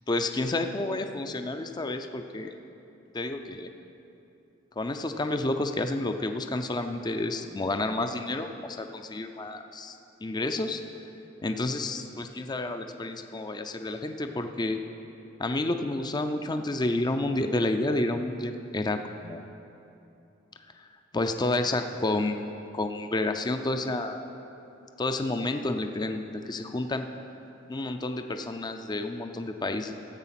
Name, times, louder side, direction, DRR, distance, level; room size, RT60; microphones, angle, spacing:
voice 1, 0.1-2.5 3.1-3.7 4.8-10.8 11.4-14.8 15.4-19.5 21.1-24.3 25.0-27.0 27.7-29.9, left 2 dB, 20° left, 7 dB, 0.5 m, -30 dB
13.5 x 8.0 x 5.8 m, 2.8 s
head